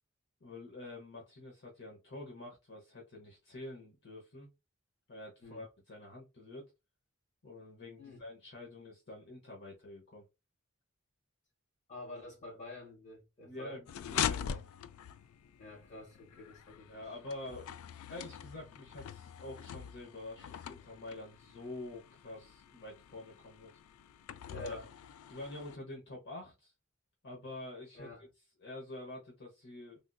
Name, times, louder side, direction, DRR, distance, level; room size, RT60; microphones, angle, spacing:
voice 1, 0.4-4.5 5.1-6.6 7.4-10.2 13.4-14.8 16.9-17.7 18.1-23.7 24.5-24.8 25.3-26.7 27.2-28.1 28.6-30.0, left 2 dB, 60° left, 0.9 m, -47 dB
voice 2, 11.9-13.8 15.6-17.1 24.5-24.9 27.9-28.3, left 2 dB, 35° left, 1.7 m, -48 dB
sound 1, 13.9-25.8, left 9 dB, 80° left, 0.3 m, -43 dB
3.5 x 2.6 x 2.2 m
head